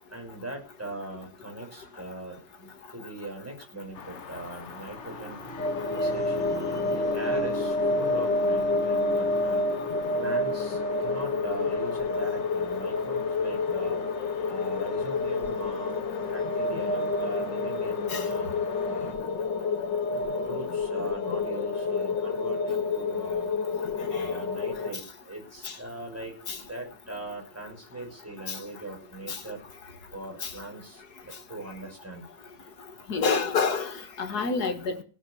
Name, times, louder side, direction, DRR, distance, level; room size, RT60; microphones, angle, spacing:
voice 1, 0.1-5.4 5.9-9.6 10.2-14.0 14.5-19.2 20.4-23.5 24.1-29.6 30.1-32.3, right 2 dB, 5° right, 5.8 m, -40 dB
sound 1, 3.9-19.2, left 6 dB, 45° left, 1.2 m, -45 dB
sound 2, 5.0-14.9, right 3 dB, 25° right, 5.6 m, -42 dB
sound 3, 5.6-24.9, left 3 dB, 75° left, 2.1 m, -28 dB
voice 2, 33.1-35.0, left 5 dB, 60° left, 2.1 m, -28 dB
17.0 x 6.9 x 9.0 m
omnidirectional pair, 2.0 m